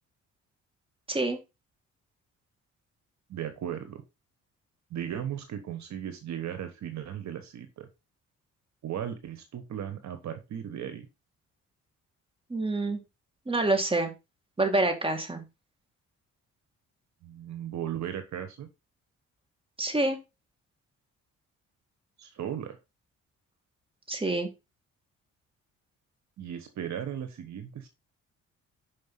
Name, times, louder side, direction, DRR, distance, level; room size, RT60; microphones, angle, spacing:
voice 1, 1.1-1.4 12.5-13.0 13.5-14.1 14.6-15.4 19.8-20.2 24.1-24.5, right 2 dB, 20° right, 5 dB, 2.4 m, -27 dB
voice 2, 3.3-4.0 4.9-7.9 8.8-11.1 17.2-18.7 22.2-22.8 26.4-27.9, right 9 dB, 65° right, 8 dB, 1.3 m, -36 dB
5.9 x 5.2 x 5.7 m, 0.26 s
cardioid pair, 90°, 30 cm